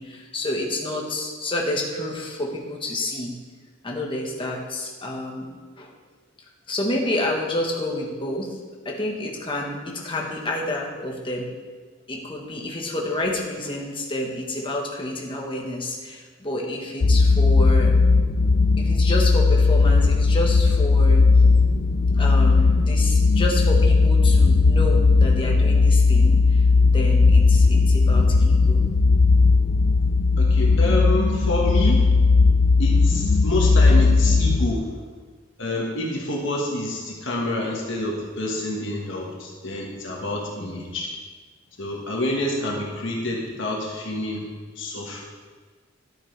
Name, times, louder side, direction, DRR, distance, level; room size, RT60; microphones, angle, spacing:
voice 1, 0.0-3.3 3.8-5.9 6.7-8.6 8.8-11.5 12.1-17.9 18.8-21.3 22.1-26.6 26.9-28.8 40.6-40.8, left 1 dB, 25° left, -1 dB, 1.4 m, -29 dB
sound 1, 17.0-34.7, left 4 dB, 45° left, 0.4 m, -17 dB
voice 2, 30.4-32.1 32.8-35.0 35.6-41.1 41.8-44.5 44.7-45.2, left 1 dB, 65° left, -2 dB, 1.6 m, -28 dB
12.0 x 8.6 x 3.4 m, 1.5 s
head